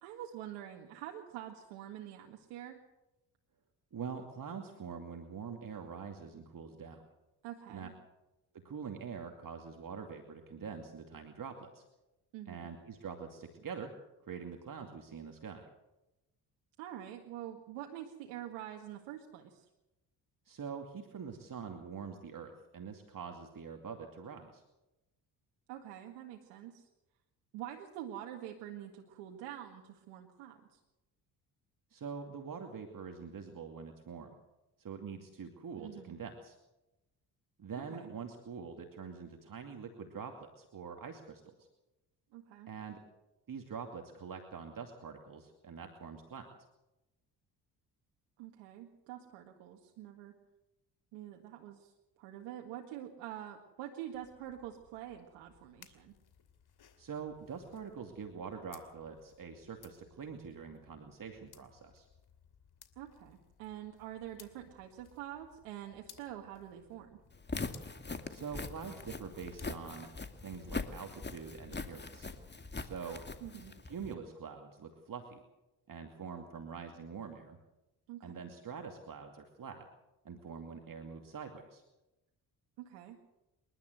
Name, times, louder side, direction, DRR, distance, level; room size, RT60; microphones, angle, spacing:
voice 1, 0.0-2.8 7.4-7.9 12.3-12.7 16.8-19.7 25.7-26.9 27.5-30.8 35.8-36.2 37.8-38.1 42.3-42.7 48.4-50.4 51.1-56.1 63.0-67.2 73.4-73.7 78.1-78.3 82.8-83.2, right 11 dB, 80° right, 2 dB, 1.9 m, -46 dB
voice 2, 3.9-7.0 7.7-7.9 8.6-11.8 12.5-13.9 14.3-15.7 20.5-24.6 31.9-34.3 34.8-36.6 37.6-41.5 42.7-43.0 43.5-46.5 57.0-62.1 68.3-70.1 70.4-72.3 72.8-73.2 73.9-75.4 75.9-77.6 78.2-79.8 80.2-81.8, right 6 dB, 45° right, 4 dB, 2.5 m, -45 dB
sound 1, 54.1-73.6, left 8 dB, 55° left, 2.8 m, -63 dB
Walk footsteps, 67.3-74.1, left 3 dB, 25° left, 2.4 m, -42 dB
28.0 x 12.0 x 8.0 m, 0.98 s
hypercardioid pair, 55°, 45 cm